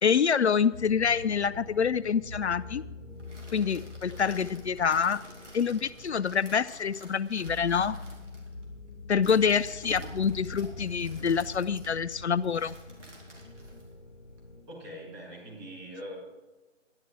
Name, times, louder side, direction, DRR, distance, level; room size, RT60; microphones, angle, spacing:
voice 1, 0.0-2.8 3.5-5.2 5.5-8.0 9.1-12.7, left 6 dB, 60° left, 15 dB, 0.5 m, -26 dB
sound 1, 0.7-14.6, left 2 dB, 5° left, 0.7 m, -44 dB
sound 2, 3.0-14.4, right 1 dB, 70° right, 4.0 m, -52 dB
voice 2, 14.7-16.2, equal, 10° right, -4 dB, 2.7 m, -42 dB
12.5 x 10.5 x 4.8 m, 1.1 s
figure-of-eight pair, 160°, 38 cm